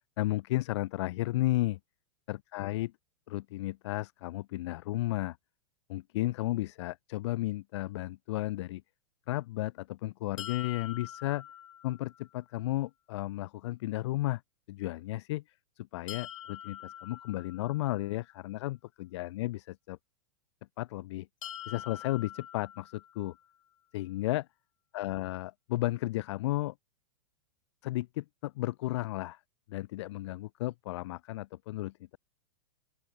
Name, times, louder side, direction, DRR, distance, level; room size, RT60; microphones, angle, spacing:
voice 1, 0.2-1.8 2.3-2.9 3.3-5.4 5.9-8.8 9.3-11.4 11.8-14.4 14.7-15.4 15.8-20.0 20.8-21.3 21.7-23.3 23.9-24.5 24.9-26.7 27.8-29.4 29.7-32.2, left 17 dB, 60° left, 0.9 m, -33 dB
sound 1, 10.4-12.3 16.1-18.1 21.4-23.4, left 10 dB, 80° left, 5.3 m, -45 dB
open air
hypercardioid pair, 135°, 16 cm